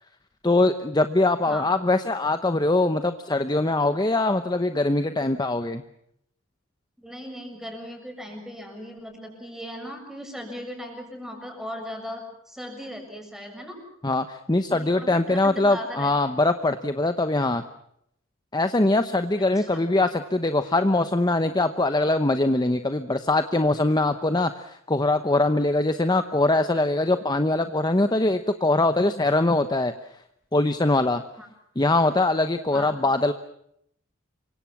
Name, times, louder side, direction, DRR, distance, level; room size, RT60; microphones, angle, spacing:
voice 1, 0.4-5.8 14.0-17.6 18.5-29.9 30.5-31.2 31.8-33.3, left 2 dB, 20° left, 9 dB, 0.9 m, -22 dB
voice 2, 7.0-13.8 14.7-16.1 19.6-19.8 31.4-31.5 32.7-33.0, equal, ahead, 3 dB, 7.0 m, -38 dB
28.0 x 24.5 x 6.0 m, 0.74 s
head